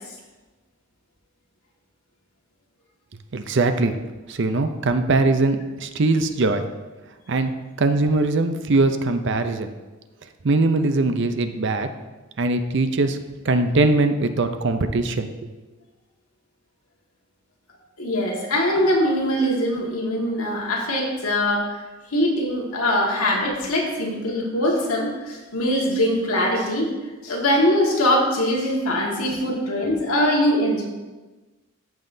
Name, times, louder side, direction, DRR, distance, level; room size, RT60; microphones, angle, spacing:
voice 1, 3.3-3.9 4.3-6.7 7.3-7.5 7.8-9.7 10.4-11.9 12.4-13.2 13.4-15.5, right 2 dB, 55° right, 8 dB, 0.6 m, -21 dB
voice 2, 18.0-21.8 22.1-26.9 27.2-30.8, left 1 dB, 80° left, -2 dB, 1.8 m, -22 dB
14.0 x 5.7 x 2.7 m, 1.2 s
head